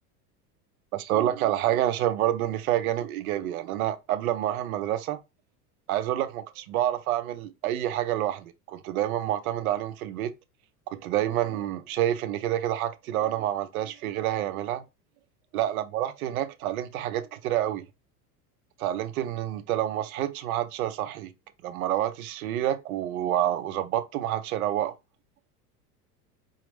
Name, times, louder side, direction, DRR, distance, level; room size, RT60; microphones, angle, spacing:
voice 1, 0.9-5.2 5.9-10.3 10.9-14.8 15.5-17.8 18.8-21.3 21.6-24.9, right 12 dB, 65° right, 0.8 m, -28 dB
5.0 x 2.5 x 3.2 m
hypercardioid pair, 80°, 47 cm